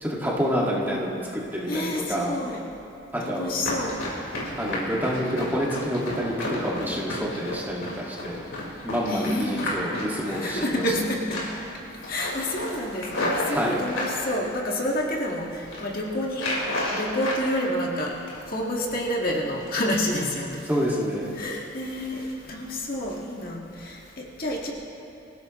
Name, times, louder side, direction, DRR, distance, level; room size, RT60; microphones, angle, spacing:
voice 1, 0.0-2.3 3.1-3.5 4.6-8.4 8.8-10.9 13.4-13.8 20.7-21.3, equal, 10° right, -5 dB, 1.9 m, -28 dB
voice 2, 1.7-2.6 3.2-4.0 9.1-9.7 10.3-11.4 12.1-15.5 15.8-16.5 16.9-18.2 18.5-20.6 21.4-24.7, left 1 dB, 45° left, -2 dB, 1.8 m, -29 dB
Run, 3.6-11.0 11.3-11.7 12.0-14.2 14.7-15.3 15.6-15.9 16.3-17.4 17.8-18.6 18.9-19.1 19.5-19.8 20.2-20.3 20.8-20.9 21.3-21.4, left 1 dB, 80° left, 4.3 m, -32 dB
25.0 x 15.5 x 3.1 m, 2.7 s
head